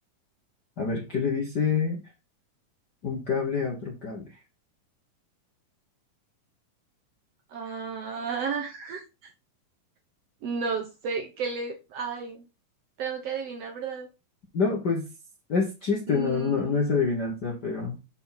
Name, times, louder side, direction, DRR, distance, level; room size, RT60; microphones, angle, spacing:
voice 1, 0.8-2.0 3.0-4.4 14.5-15.1 15.5-18.0, left 5 dB, 55° left, 0 dB, 1.1 m, -27 dB
voice 2, 7.5-9.0 10.4-12.4 13.0-14.1 16.1-16.8, right 5 dB, 65° right, 3 dB, 1.7 m, -33 dB
6.9 x 5.7 x 3.9 m, 0.27 s
omnidirectional pair, 3.8 m